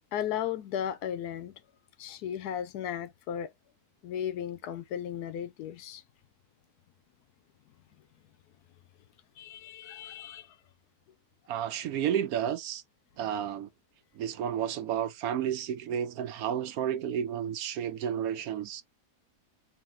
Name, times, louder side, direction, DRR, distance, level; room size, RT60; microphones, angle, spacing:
voice 1, 0.1-1.6 2.0-3.5 4.0-6.0 9.4-10.6, left 9 dB, 80° left, 1.1 m, -35 dB
voice 2, 11.5-12.8 13.2-13.7 14.2-18.8, right 9 dB, 70° right, 1.0 m, -31 dB
3.5 x 2.9 x 3.6 m
omnidirectional pair, 1.7 m